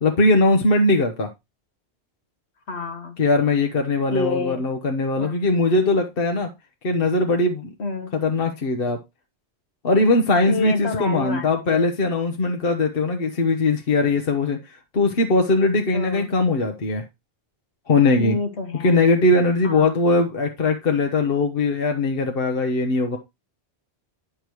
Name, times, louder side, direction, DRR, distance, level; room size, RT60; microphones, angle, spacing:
voice 1, 0.0-1.3 3.2-6.5 6.8-7.7 8.1-9.0 9.8-14.6 14.9-17.0 17.9-18.4 18.8-23.2, left 2 dB, 60° left, 4 dB, 1.2 m, -20 dB
voice 2, 2.7-3.2 4.1-4.6 5.2-5.4 7.8-8.1 10.5-11.9 15.9-16.3 18.1-19.0 19.6-19.9, left 3 dB, 80° left, 5 dB, 1.5 m, -28 dB
9.9 x 6.9 x 3.0 m, 0.22 s
omnidirectional pair, 1.1 m